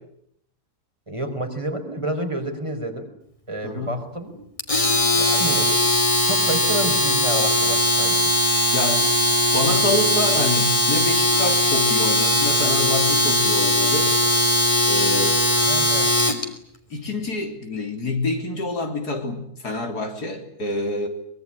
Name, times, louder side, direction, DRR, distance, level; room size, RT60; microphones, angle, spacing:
voice 1, 1.1-3.1 3.5-4.4 5.1-5.8 6.2-8.2 15.6-16.1, right 1 dB, 20° right, 4 dB, 4.6 m, -29 dB
Domestic sounds home sounds, 4.6-16.4, left 1 dB, 20° left, 3.3 m, -19 dB
voice 2, 8.7-9.2 9.5-14.1 14.9-15.5 16.9-21.1, left 2 dB, 80° left, 4 dB, 4.1 m, -27 dB
24.0 x 22.0 x 10.0 m, 0.71 s
omnidirectional pair, 1.7 m